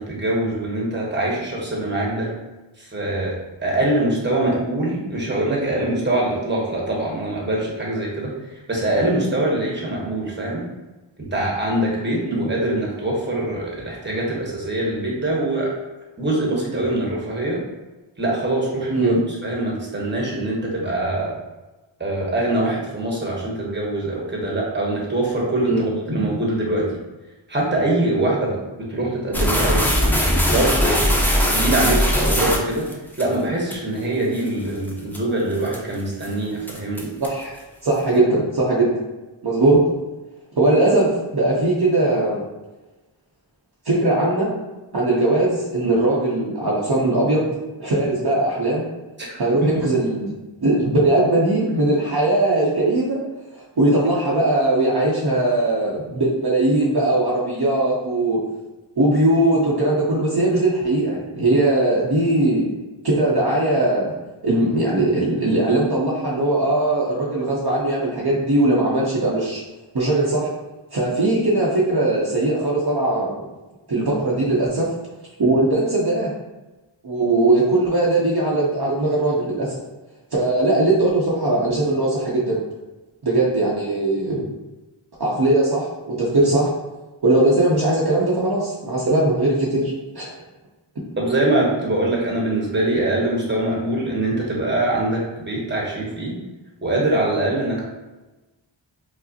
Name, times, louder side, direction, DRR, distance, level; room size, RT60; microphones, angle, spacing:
voice 1, 0.0-2.3 2.8-3.3 3.6-8.3 8.7-10.6 11.3-15.7 16.2-17.6 18.2-19.2 19.4-21.3 22.0-26.8 27.5-30.1 30.5-31.0 31.5-32.8 33.2-37.1 49.2-49.4 49.7-49.9 91.2-96.3 96.8-97.8, right 1 dB, 20° right, -4 dB, 1.0 m, -23 dB
voice 2, 25.6-26.3 37.2-37.6 37.8-38.9 39.4-39.9 40.6-42.4 43.9-44.5 44.9-47.5 47.8-48.8 49.4-50.3 50.6-53.2 53.5-58.4 59.0-62.7 63.0-64.2 64.4-69.6 69.9-70.5 70.9-73.5 73.9-74.9 75.4-76.3 77.0-79.7 80.3-82.6 83.2-84.5 85.2-86.7 87.2-90.3, right 2 dB, 50° right, -5 dB, 0.7 m, -20 dB
sound 1, 29.3-33.2 33.7-33.8 34.4-34.5 34.9-35.2 35.7-35.9 36.2-36.3 36.7-37.4, equal, 5° left, 0.5 m, -20 dB
4.8 x 2.0 x 2.7 m, 1.1 s
wide cardioid pair, 50°, 49 cm